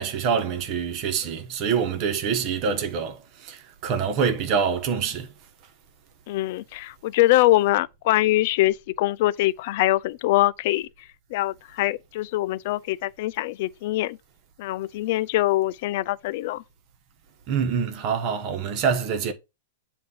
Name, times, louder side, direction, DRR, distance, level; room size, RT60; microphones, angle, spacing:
voice 1, 0.0-5.3 17.5-19.3, right 6 dB, 40° right, 1.2 m, -25 dB
voice 2, 6.3-10.9 11.3-14.2 14.6-16.6, left 16 dB, 55° left, 0.4 m, -23 dB
7.7 x 2.7 x 5.5 m
hypercardioid pair, 140°, 0 cm